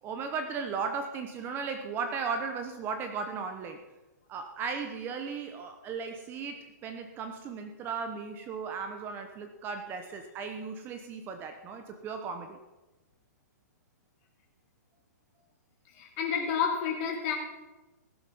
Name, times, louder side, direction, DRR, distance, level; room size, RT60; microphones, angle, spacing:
voice 1, 0.0-3.8 4.3-12.6, right 5 dB, 20° right, 6 dB, 0.9 m, -36 dB
voice 2, 15.9-17.3, left 7 dB, 35° left, -1 dB, 3.5 m, -30 dB
17.5 x 7.5 x 5.5 m, 1.1 s
hypercardioid pair, 150°, 10 cm